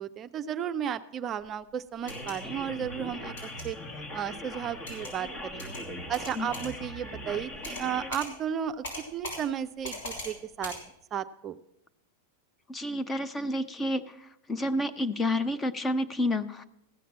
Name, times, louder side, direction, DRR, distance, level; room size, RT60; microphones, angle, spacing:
voice 1, 0.0-3.8 4.1-5.7 6.1-8.9 9.1-10.7 11.1-11.6, right 9 dB, 30° right, 9 dB, 0.4 m, -34 dB
sound 1, 2.0-2.3 3.4-3.7 4.9-5.1 5.6-5.8 6.1-6.7 7.6-7.9 8.1-8.3 8.8-9.4 9.8-10.3 10.6-10.8, left 1 dB, 85° left, 5.7 m, -39 dB
sound 2, 2.0-8.1, left 1 dB, 35° left, 1.3 m, -40 dB
voice 2, 12.7-14.1 14.5-16.6, left 1 dB, 15° left, 13 dB, 0.6 m, -29 dB
15.0 x 5.8 x 7.3 m, 0.82 s
hypercardioid pair, 120°, 0 cm